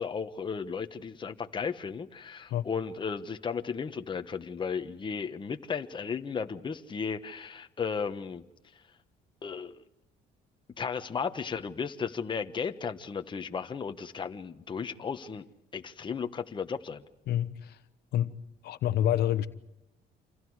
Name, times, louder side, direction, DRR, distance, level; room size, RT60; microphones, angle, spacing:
voice 1, 0.0-8.4 9.4-9.8 10.8-15.4 15.7-17.0, left 6 dB, 30° left, 1.2 m, -35 dB
voice 2, 17.3-17.8 18.1-18.4 18.6-19.5, left 11 dB, 70° left, 1.1 m, -27 dB
28.5 x 27.0 x 4.8 m
cardioid pair, 110°, 17 cm